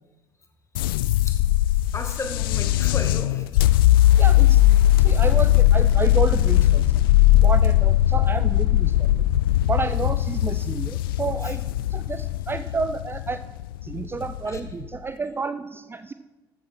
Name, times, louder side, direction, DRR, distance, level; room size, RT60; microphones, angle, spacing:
sound 1, 0.7-14.9, left 14 dB, 75° left, 0.4 m, -19 dB
voice 1, 1.9-3.6 11.4-11.5 14.5-14.6, left 2 dB, 25° left, 4 dB, 2.1 m, -34 dB
voice 2, 4.2-4.6 5.0-7.0 7.4-9.2 9.7-11.6 11.9-13.4 13.8-16.1, right 4 dB, 20° right, 12 dB, 0.5 m, -30 dB
13.5 x 8.4 x 4.4 m, 1.2 s
figure-of-eight pair, 60°, 12 cm